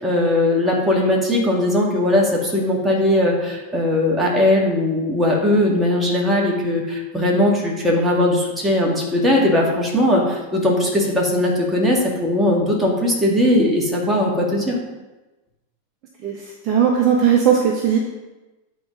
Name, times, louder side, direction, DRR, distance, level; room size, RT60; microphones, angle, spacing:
voice 1, 0.0-14.8, left 1 dB, 5° right, -3 dB, 2.0 m, -19 dB
voice 2, 16.2-18.0, right 8 dB, 35° right, 1 dB, 1.0 m, -18 dB
8.3 x 4.1 x 5.2 m, 1.1 s
figure-of-eight pair, 90°, 0 cm